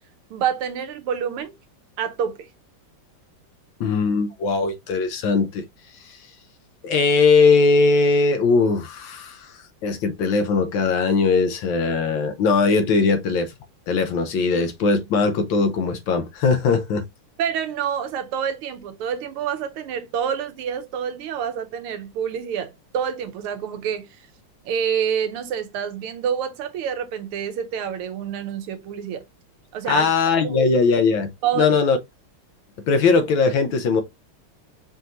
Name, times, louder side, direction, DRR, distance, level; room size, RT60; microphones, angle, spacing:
voice 1, 0.3-1.5 2.0-2.5 17.4-24.1 24.6-29.2 29.7-30.1 30.4-30.7 31.4-31.8, right 8 dB, 90° right, 1.7 m, -27 dB
voice 2, 3.8-5.6 6.8-9.5 9.8-13.5 13.9-17.0 29.9-31.3 31.5-32.0 32.9-34.0, left 4 dB, 70° left, 1.4 m, -20 dB
5.6 x 2.6 x 2.9 m
omnidirectional pair, 2.4 m